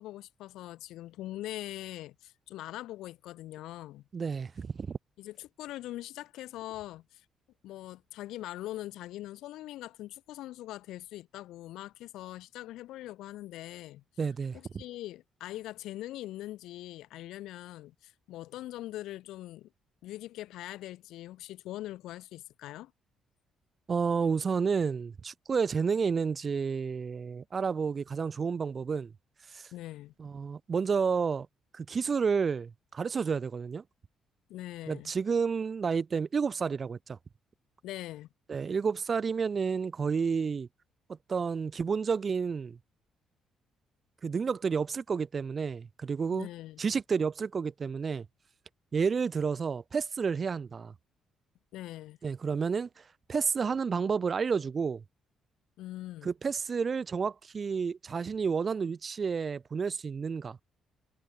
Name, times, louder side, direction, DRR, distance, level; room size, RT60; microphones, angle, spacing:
voice 1, 0.0-4.0 5.2-7.2 7.6-14.0 14.5-19.7 20.0-22.9 29.7-30.1 34.5-35.1 37.8-38.3 46.3-46.8 51.7-52.2 55.8-56.3, left 15 dB, 85° left, 1.8 m, -42 dB
voice 2, 4.1-5.0 14.2-14.8 23.9-29.1 29.5-29.7 30.2-31.5 31.7-33.8 34.9-37.2 38.5-40.7 41.3-42.8 44.2-46.5 46.8-48.3 48.9-50.9 52.2-53.0 53.3-55.0 56.2-60.6, right 5 dB, 40° right, 0.5 m, -30 dB
cardioid pair, 100°, 0 cm